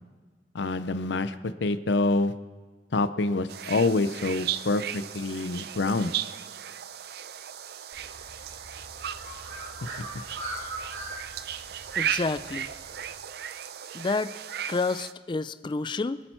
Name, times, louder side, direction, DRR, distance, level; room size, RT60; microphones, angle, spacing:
voice 1, 0.5-2.3 2.9-6.1, left 2 dB, 70° left, 12 dB, 0.6 m, -26 dB
sound 1, 3.5-15.1, right 10 dB, 60° right, 0.5 m, -36 dB
Bird, 7.9-13.1, right 1 dB, 90° right, 2.6 m, -41 dB
voice 2, 12.0-12.7 13.9-14.3 14.7-16.2, left 3 dB, 25° left, 13 dB, 0.4 m, -29 dB
25.0 x 8.7 x 4.5 m, 1.4 s
head